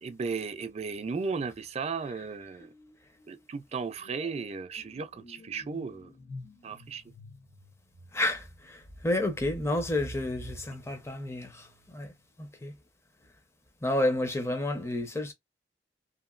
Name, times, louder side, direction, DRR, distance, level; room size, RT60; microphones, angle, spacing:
voice 1, 0.0-2.7 3.3-6.1 6.6-7.0, right 5 dB, 40° right, 0.4 m, -35 dB
sound 1, 2.6-2.9 3.2-12.0, equal, 80° left, 1.3 m, -48 dB
voice 2, 8.1-11.7 11.9-12.1 12.4-12.7 13.8-15.3, left 1 dB, 15° left, 0.6 m, -30 dB
2.8 x 2.6 x 2.4 m
head